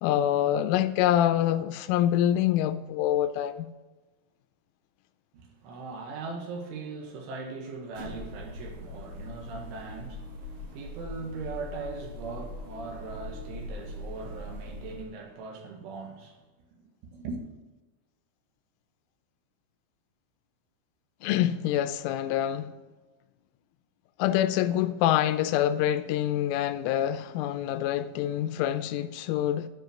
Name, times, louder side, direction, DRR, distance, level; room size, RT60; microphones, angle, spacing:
voice 1, 0.0-3.7 21.2-22.7 24.2-29.7, left 11 dB, 85° left, 3.0 m, -26 dB
voice 2, 5.3-16.4 17.1-17.5, right 3 dB, 75° right, 3.9 m, -40 dB
sound 1, 7.9-15.0, left 1 dB, 60° right, 4.3 m, -41 dB
12.0 x 5.4 x 7.6 m
omnidirectional pair, 5.8 m